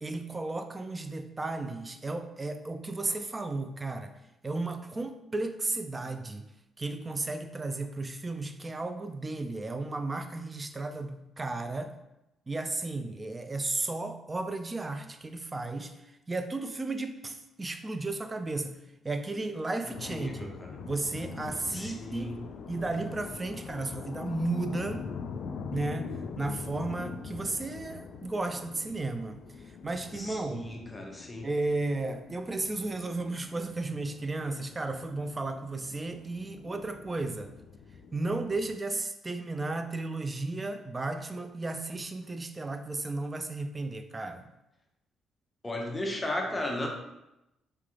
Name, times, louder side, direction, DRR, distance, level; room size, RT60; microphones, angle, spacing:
voice 1, 0.0-4.1 4.4-6.5 6.8-11.9 12.5-16.0 16.3-18.8 19.0-20.5 20.8-22.3 22.7-25.1 25.7-29.4 29.8-30.6 31.4-37.5 38.1-44.5, right 2 dB, 25° right, 8 dB, 0.4 m, -34 dB
sound 1, 19.9-38.8, left 5 dB, 70° left, 0.3 m, -43 dB
voice 2, 19.9-20.8 21.7-22.5 30.2-31.5 45.6-46.9, left 1 dB, 15° left, 1 dB, 0.7 m, -35 dB
3.3 x 3.3 x 3.7 m, 0.92 s
cardioid pair, 90°, 0 cm